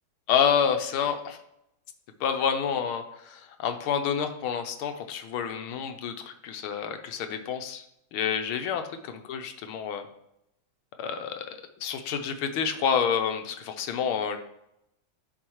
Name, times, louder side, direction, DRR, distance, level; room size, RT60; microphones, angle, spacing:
voice 1, 0.3-1.4 2.2-7.8 8.1-10.1 11.0-11.5 11.8-14.4, left 7 dB, 80° left, 6 dB, 1.6 m, -28 dB
10.5 x 4.7 x 3.1 m, 0.81 s
omnidirectional pair, 2.3 m